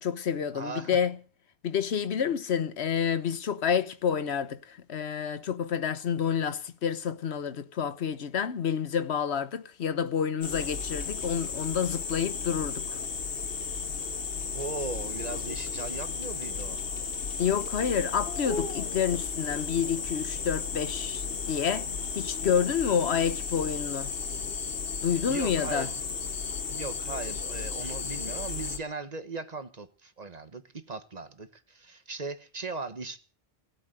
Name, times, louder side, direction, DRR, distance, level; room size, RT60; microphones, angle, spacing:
voice 1, 0.0-1.2 1.6-13.0 17.4-21.9 22.2-24.1 25.0-25.9, left 7 dB, 85° left, 1.2 m, -29 dB
voice 2, 0.5-0.9 14.5-16.8 25.3-25.9 26.7-33.2, right 3 dB, 40° right, 1.2 m, -38 dB
sound 1, 10.4-28.8, left 5 dB, 65° left, 1.4 m, -34 dB
17.0 x 8.3 x 7.8 m
omnidirectional pair, 1.1 m